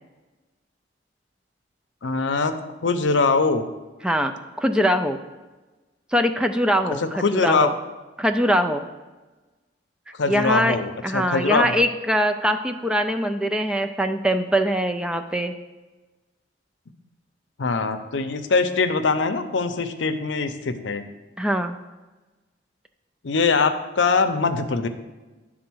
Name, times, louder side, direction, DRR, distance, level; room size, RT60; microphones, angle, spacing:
voice 1, 2.0-2.5 2.8-3.6 7.0-7.7 10.2-11.8 17.6-21.0 23.2-24.9, left 4 dB, 80° left, 8 dB, 0.6 m, -22 dB
voice 2, 4.0-5.2 6.1-7.7 8.2-8.8 10.3-10.8 11.0-15.5 21.4-21.8, equal, 5° right, 6 dB, 0.3 m, -22 dB
10.5 x 3.8 x 6.1 m, 1.2 s
head